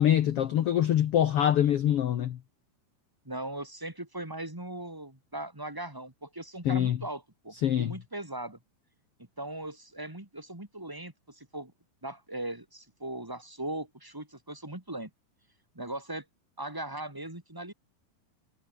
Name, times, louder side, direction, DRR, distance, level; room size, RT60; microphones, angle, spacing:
voice 1, 0.0-2.4 6.6-7.0 7.6-7.9, left 10 dB, 70° left, 1.4 m, -24 dB
voice 2, 3.2-8.6 9.4-11.7 12.0-15.1 15.7-16.2 16.6-17.7, right 1 dB, 5° right, 2.2 m, -39 dB
omnidirectional pair, 4.1 m